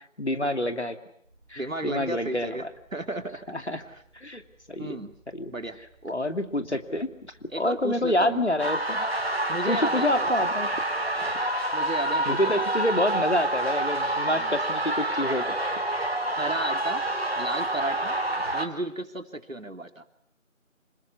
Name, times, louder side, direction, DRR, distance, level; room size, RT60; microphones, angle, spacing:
voice 1, 0.2-1.0 1.5-2.6 3.5-3.8 4.1-4.4 4.7-5.0 5.3-5.5 6.1-7.1 7.6-9.1 9.7-10.7 12.3-15.6, left 1 dB, 55° left, 8 dB, 2.7 m, -27 dB
sound 1, 1.2-14.8, right 2 dB, 5° right, 3.6 m, -61 dB
voice 2, 1.6-2.7 2.9-3.5 3.8-4.0 4.8-5.1 5.5-6.2 7.5-8.5 9.5-10.3 11.7-12.7 14.3-14.6 16.3-17.1 17.4-18.2 18.5-20.0, right 2 dB, 80° right, 7 dB, 3.1 m, -34 dB
sound 2, 8.6-18.7, right 1 dB, 50° right, 3.0 m, -27 dB
27.5 x 20.0 x 9.7 m, 0.69 s
figure-of-eight pair, 175°, 39 cm